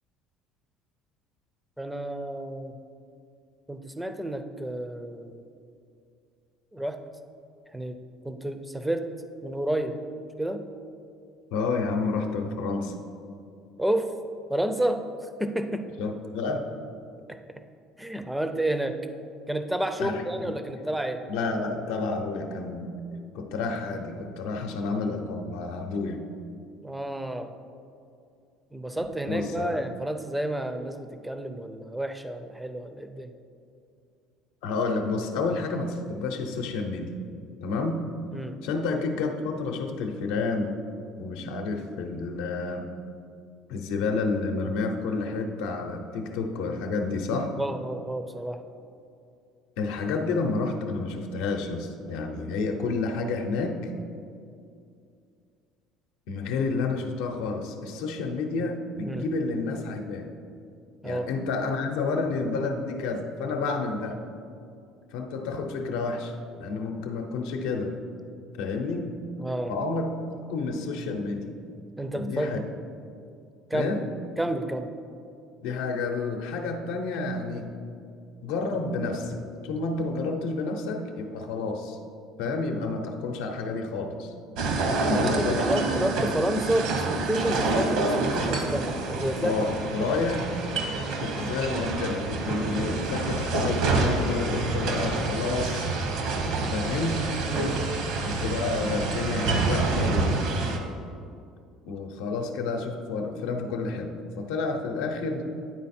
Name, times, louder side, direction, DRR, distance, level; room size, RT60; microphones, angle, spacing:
voice 1, 1.8-2.7 3.7-5.4 6.7-7.0 7.7-8.0 8.2-9.0 9.4-10.0 10.4-10.6 13.8-14.1 14.5-15.0 15.4-15.8 17.3-17.4 18.0-19.0 19.5-21.2 26.8-27.5 28.7-33.3 38.3-38.5 47.6-48.6 59.0-59.3 61.0-61.3 69.4-69.7 72.0-72.7 73.7-74.0 74.4-74.9 85.1-89.5 90.0-90.1 97.5-97.8, right 1 dB, 5° right, 7 dB, 0.4 m, -30 dB
voice 2, 11.5-12.9 16.0-16.7 20.0-20.6 21.3-22.9 23.3-26.2 29.0-29.7 34.6-37.1 37.6-38.1 38.6-40.7 41.2-42.9 43.7-47.5 49.8-53.8 56.3-60.3 61.0-64.2 65.1-66.3 66.6-68.0 68.6-69.1 69.7-71.6 72.1-72.6 73.7-74.0 75.6-77.7 78.4-82.0 82.4-84.3 85.0-85.7 89.4-90.4 91.2-95.9 96.7-97.3 98.2-100.5 101.8-105.5, left 3 dB, 85° left, 3 dB, 0.6 m, -30 dB
sound 1, 84.6-100.8, right 3 dB, 65° right, 0.8 m, -27 dB
9.5 x 4.1 x 4.2 m, 2.5 s
cardioid pair, 155°, 0 cm